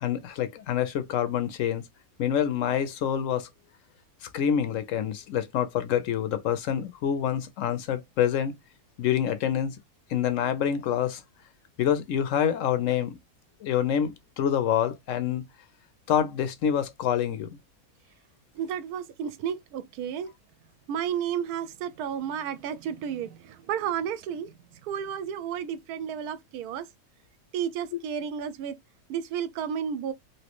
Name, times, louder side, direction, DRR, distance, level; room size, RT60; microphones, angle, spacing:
voice 1, 0.0-1.8 2.2-3.5 4.3-8.5 9.0-9.8 10.1-11.2 11.8-13.1 13.6-15.4 16.1-17.6, left 9 dB, 65° left, 0.9 m, -26 dB
voice 2, 18.6-20.3 20.9-24.5 24.9-26.9 27.5-28.8 29.1-30.1, right 8 dB, 75° right, 1.0 m, -32 dB
3.1 x 2.8 x 2.9 m
omnidirectional pair, 1.7 m